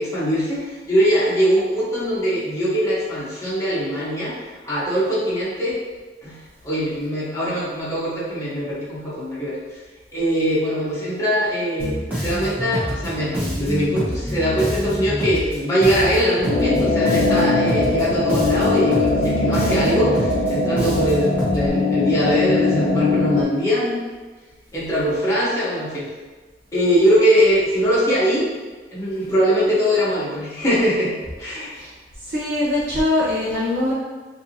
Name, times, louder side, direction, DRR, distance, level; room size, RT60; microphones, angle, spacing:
voice 1, 0.0-4.3 4.6-5.8 6.2-6.4 6.6-9.6 10.1-24.0 24.7-26.1 26.7-28.5 28.9-31.1 31.4-31.8, equal, 15° left, -9 dB, 1.2 m, -21 dB
Bass guitar, 11.8-21.7, equal, 10° right, 1.2 m, -27 dB
sound 1, 16.5-23.4, left 3 dB, 50° left, 0.5 m, -21 dB
voice 2, 31.7-33.9, left 2 dB, 65° right, -9 dB, 0.8 m, -23 dB
4.6 x 2.7 x 2.9 m, 1.3 s
head